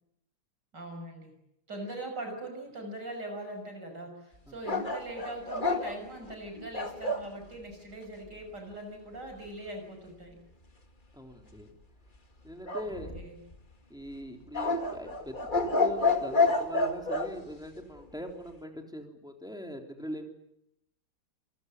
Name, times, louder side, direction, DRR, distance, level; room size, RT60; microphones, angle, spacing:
voice 1, 0.7-1.3 1.7-10.4 12.9-13.4, right 1 dB, 50° right, 4 dB, 6.4 m, -41 dB
sound 1, 4.7-7.3 12.7-13.5 14.5-17.3, left 3 dB, 25° left, 2.2 m, -29 dB
voice 2, 11.1-11.7 12.4-13.2 13.9-20.3, equal, ahead, 2 dB, 3.6 m, -41 dB
28.5 x 17.5 x 9.7 m, 0.83 s
omnidirectional pair, 2.4 m